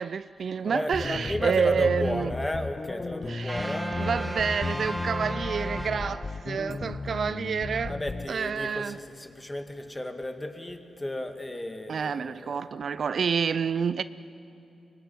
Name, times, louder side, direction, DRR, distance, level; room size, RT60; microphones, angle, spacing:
voice 1, 0.0-2.3 3.3-8.0 8.3-9.0 11.9-14.0, right 6 dB, 65° right, 0.5 m, -28 dB
voice 2, 0.6-4.1 7.8-12.6, left 1 dB, 20° left, 2.3 m, -34 dB
sound 1, 0.9-8.3, left 3 dB, 40° left, 0.8 m, -35 dB
sound 2, 3.5-6.7, right 1 dB, 5° right, 3.7 m, -35 dB
23.5 x 19.5 x 9.5 m
cardioid pair, 55°, 0 cm